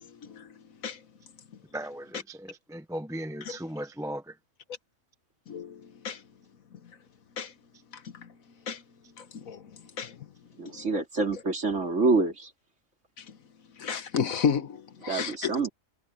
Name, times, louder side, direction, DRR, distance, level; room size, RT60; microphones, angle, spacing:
voice 1, 1.7-4.3, right 1 dB, 5° right, 0.8 m, -37 dB
voice 2, 10.6-12.5 15.1-15.7, right 3 dB, 55° right, 3.4 m, -26 dB
voice 3, 13.8-14.8 15.0-15.7, left 7 dB, 70° left, 1.5 m, -30 dB
omnidirectional pair, 1.5 m